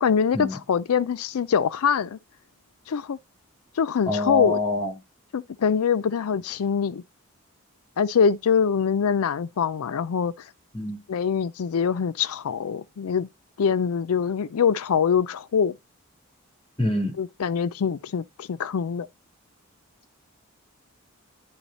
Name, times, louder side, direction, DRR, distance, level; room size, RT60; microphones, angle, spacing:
voice 1, 0.0-2.2 2.9-3.2 3.8-4.6 5.3-7.0 8.0-10.3 11.1-13.3 13.6-15.7 17.2-19.1, left 6 dB, 85° left, 0.4 m, -24 dB
voice 2, 4.1-4.9 10.7-11.0 16.8-17.2, left 2 dB, 25° left, 2.9 m, -25 dB
10.5 x 3.9 x 4.1 m
head